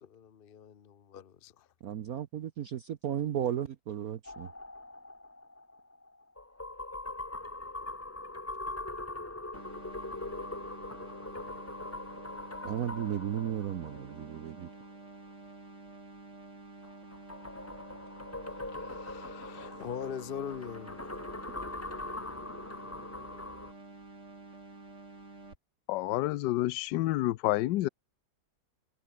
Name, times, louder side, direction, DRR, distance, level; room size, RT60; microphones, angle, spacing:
voice 1, 0.0-1.7 18.7-21.4, left 8 dB, 45° left, 0.8 m, -42 dB
voice 2, 1.8-4.5 12.6-14.7, right 10 dB, 55° right, 1.2 m, -34 dB
sound 1, 4.2-14.8 16.8-23.7, left 2 dB, 20° left, 0.4 m, -42 dB
sound 2, 9.5-25.5, right 2 dB, 40° right, 4.4 m, -50 dB
voice 3, 25.9-27.9, left 16 dB, 75° left, 1.2 m, -29 dB
omnidirectional pair, 2.0 m